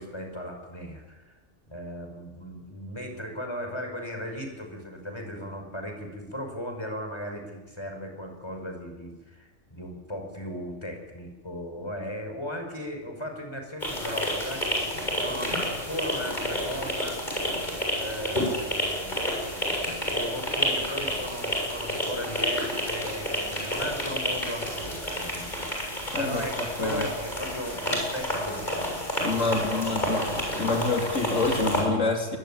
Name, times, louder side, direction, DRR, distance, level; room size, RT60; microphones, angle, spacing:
voice 1, 0.0-1.3 1.7-17.4 17.9-29.8, equal, 20° left, 4 dB, 5.4 m, -37 dB
sound 1, 13.8-31.8, equal, 40° left, 7.8 m, -30 dB
voice 2, 29.2-30.2 30.6-32.4, left 3 dB, 90° left, 2 dB, 3.6 m, -26 dB
23.0 x 21.0 x 8.9 m, 1.2 s
omnidirectional pair, 1.3 m